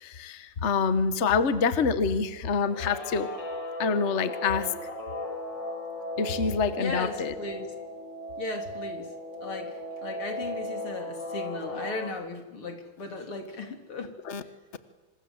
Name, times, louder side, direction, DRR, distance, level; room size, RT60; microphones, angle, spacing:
voice 1, 0.0-3.3 3.8-4.7 6.2-7.3 14.3-14.4, left 5 dB, 35° left, 11 dB, 1.4 m, -26 dB
Guitar, 2.6-12.1, left 1 dB, 55° left, 3.9 m, -36 dB
voice 2, 6.8-7.7 8.4-9.1 9.4-14.1, left 3 dB, 85° left, 4 dB, 4.2 m, -36 dB
27.5 x 26.0 x 8.0 m, 1.2 s
omnidirectional pair, 2.3 m